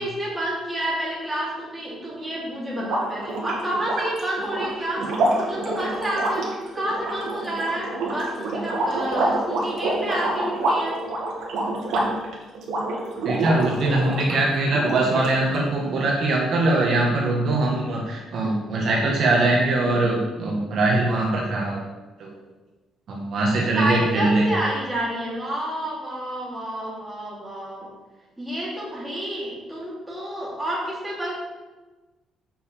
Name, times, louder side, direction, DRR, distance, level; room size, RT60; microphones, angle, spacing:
voice 1, 0.0-5.1 5.4-10.9 23.7-27.9 28.4-31.3, right 1 dB, 5° right, -6 dB, 3.1 m, -29 dB
sound 1, 2.8-14.4 14.7-15.5, right 2 dB, 65° right, 2.2 m, -27 dB
voice 2, 13.2-21.8 22.2-22.3 23.1-24.5, right 2 dB, 50° right, -2 dB, 1.5 m, -22 dB
7.7 x 5.5 x 6.9 m, 1.2 s
cardioid pair, 160°, 0 cm